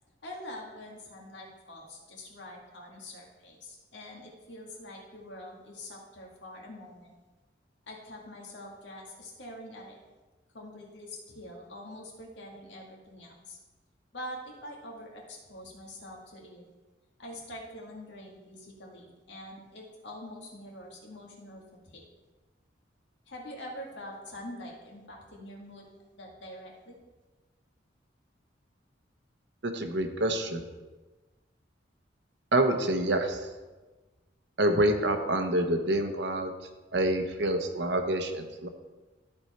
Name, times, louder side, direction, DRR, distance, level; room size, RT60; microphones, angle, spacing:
voice 1, 0.2-7.1 7.9-10.0 10.5-13.6 14.1-16.6 17.2-22.0 23.3-27.0, left 1 dB, 70° left, -2 dB, 2.0 m, -45 dB
voice 2, 29.6-30.6 32.5-33.5 34.6-36.5 36.9-38.7, right 1 dB, 65° right, 6 dB, 0.9 m, -27 dB
13.5 x 4.5 x 4.3 m, 1.2 s
head